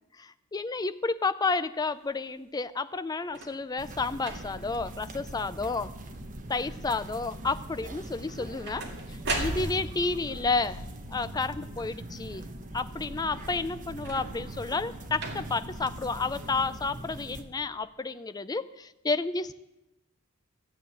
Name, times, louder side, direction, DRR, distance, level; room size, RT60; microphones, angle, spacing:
voice 1, 0.2-5.9 6.5-10.8 11.1-12.4 12.7-19.5, left 3 dB, 15° left, 12 dB, 0.4 m, -31 dB
sound 1, 3.2-3.6 4.2-4.7 5.3-5.7 6.0-6.5 8.2-10.1 13.9-14.6 15.2-15.7 16.6-16.7, right 2 dB, 50° right, 2.2 m, -36 dB
sound 2, 3.8-17.4, right 1 dB, 35° right, 1.1 m, -42 dB
14.0 x 7.8 x 8.3 m, 0.94 s
head